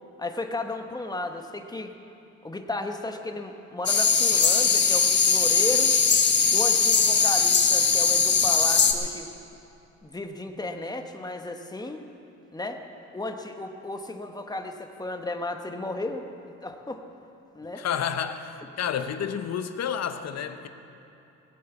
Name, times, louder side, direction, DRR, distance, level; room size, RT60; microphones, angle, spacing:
voice 1, 0.2-1.9 2.4-6.0 6.5-9.3 10.0-12.1 12.5-12.8 13.1-16.3 16.6-17.1 17.5-17.8, left 2 dB, 15° left, 5 dB, 1.2 m, -34 dB
sound 1, 3.9-8.9, left 5 dB, 35° left, 1.3 m, -20 dB
voice 2, 17.8-20.7, left 8 dB, 60° left, 9 dB, 0.9 m, -30 dB
19.0 x 8.5 x 7.2 m, 2.8 s
cardioid pair, 90°, 30 cm